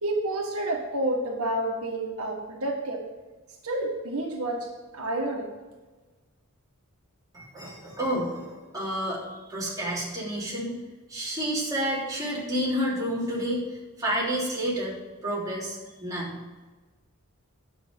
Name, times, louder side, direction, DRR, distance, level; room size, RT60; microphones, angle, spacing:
voice 1, 0.0-3.0 3.6-4.7 4.9-5.4, right 1 dB, 80° right, 1 dB, 1.6 m, -29 dB
voice 2, 7.3-9.2 9.5-10.7 11.1-15.0 15.2-16.4, equal, 15° right, -6 dB, 3.2 m, -30 dB
10.0 x 7.3 x 5.3 m, 1.3 s
head